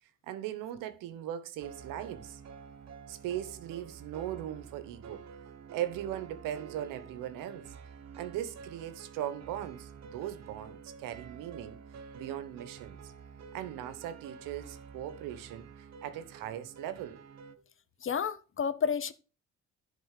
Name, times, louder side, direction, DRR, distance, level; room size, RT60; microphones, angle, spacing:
voice 1, 0.2-2.4 3.1-5.2 5.7-7.7 8.1-11.8 12.1-13.1 13.5-17.2, right 11 dB, 80° right, 1.1 m, -39 dB
sound 1, 1.6-17.6, right 6 dB, 55° right, 1.2 m, -49 dB
voice 2, 18.0-19.1, left 7 dB, 40° left, 0.9 m, -30 dB
10.5 x 4.1 x 6.6 m
supercardioid pair, 75°, 32 cm